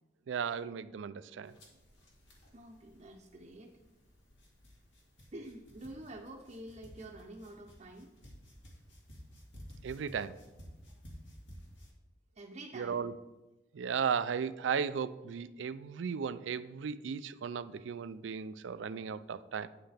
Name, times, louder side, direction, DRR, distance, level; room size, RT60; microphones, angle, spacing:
voice 1, 0.3-1.5 9.8-10.3 12.7-13.1 13.7-19.7, right 6 dB, 90° right, 15 dB, 0.4 m, -35 dB
sound 1, 1.4-11.9, equal, 80° left, 2.0 m, -55 dB
voice 2, 2.5-3.7 5.3-8.1 12.4-13.1, right 1 dB, 35° right, -1 dB, 0.6 m, -48 dB
9.0 x 7.7 x 3.4 m, 1.1 s
head